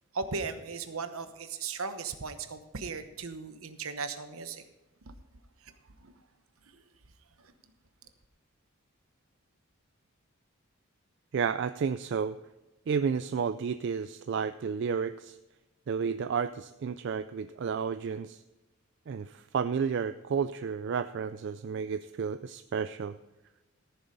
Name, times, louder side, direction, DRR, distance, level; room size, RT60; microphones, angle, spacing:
voice 1, 0.1-4.6 5.1-5.2 5.6-5.7 6.0-6.1 6.7-6.8 7.4-7.5, right 4 dB, 70° right, 9 dB, 1.0 m, -37 dB
voice 2, 11.3-12.4 12.9-15.4 15.9-18.4 19.1-23.2, right 6 dB, 50° right, 11 dB, 0.3 m, -31 dB
14.0 x 7.1 x 5.3 m, 1.0 s
head